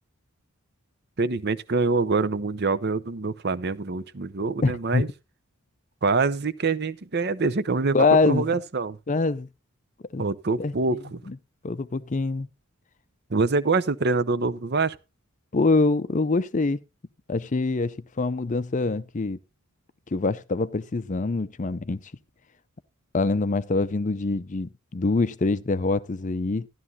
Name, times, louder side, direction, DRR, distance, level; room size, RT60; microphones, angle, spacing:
voice 1, 1.2-5.1 6.0-8.0 8.3-9.0 10.2-11.2 13.3-15.0, right 3 dB, 45° right, 0.7 m, -25 dB
voice 2, 4.6-5.0 7.9-8.5 9.1-9.5 10.1-10.3 10.6-11.0 11.3-11.4 11.6-12.5 15.5-16.8 17.3-19.4 20.1-22.0 23.1-26.7, left 3 dB, 35° left, 0.5 m, -24 dB
13.0 x 11.0 x 2.7 m
head